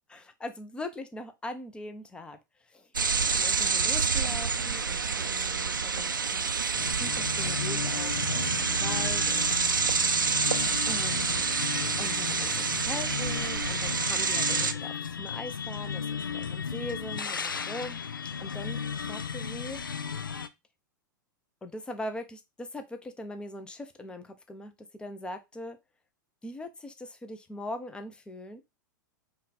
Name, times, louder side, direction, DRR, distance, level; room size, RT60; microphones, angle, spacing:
voice 1, 0.1-2.9 3.3-6.5 7.0-9.5 10.9-11.5 12.0-18.0 18.4-18.8 19.1-19.8 21.6-25.8 26.4-28.6, left 1 dB, 10° left, 8 dB, 0.6 m, -41 dB
sound 1, 2.9-14.7, right 5 dB, 80° right, 0.5 m, -28 dB
sound 2, 6.8-20.5, left 6 dB, 80° left, 0.4 m, -35 dB
5.2 x 2.4 x 4.1 m, 0.23 s
figure-of-eight pair, 95°, 11 cm